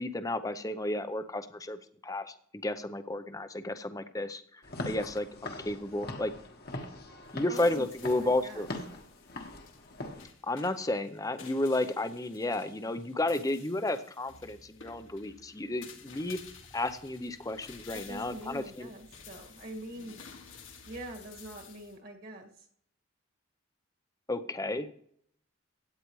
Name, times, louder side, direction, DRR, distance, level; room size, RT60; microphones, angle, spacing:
voice 1, 0.0-2.3 2.6-6.3 7.3-8.7 10.4-16.4 16.7-18.9 24.3-24.9, left 2 dB, 15° left, 10 dB, 0.7 m, -32 dB
Walk footsteps / Siren, 4.6-10.2, left 2 dB, 50° left, 1.4 m, -42 dB
sound 1, 7.2-22.0, left 6 dB, 70° left, 1.9 m, -53 dB
voice 2, 7.5-8.7 17.9-20.2 20.9-22.7, right 1 dB, 45° right, 2 dB, 1.9 m, -44 dB
16.5 x 9.4 x 3.1 m, 0.66 s
head